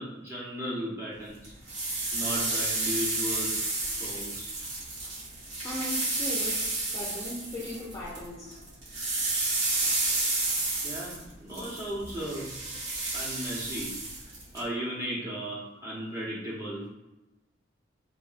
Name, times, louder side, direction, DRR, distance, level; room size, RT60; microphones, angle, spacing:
voice 1, 0.0-1.5 2.1-3.6 3.9-4.5 10.8-12.5 13.1-13.9 14.5-16.9, equal, 15° right, 1.0 m, -35 dB
sound 1, 1.4-8.2 8.5-14.6, right 2 dB, 90° right, 1.4 m, -31 dB
voice 2, 5.6-8.6, left 1 dB, 20° left, 0.5 m, -38 dB
3.9 x 2.5 x 2.4 m
head